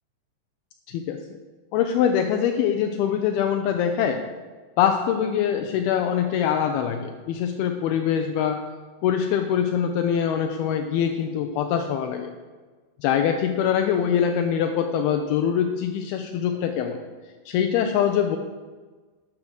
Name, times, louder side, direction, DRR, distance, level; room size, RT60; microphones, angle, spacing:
voice 1, 0.9-1.2 1.7-4.2 4.8-8.6 9.0-12.3 13.0-17.0 17.5-18.4, left 8 dB, 85° left, 5 dB, 2.2 m, -23 dB
12.0 x 6.7 x 6.3 m, 1.3 s
omnidirectional pair, 5.1 m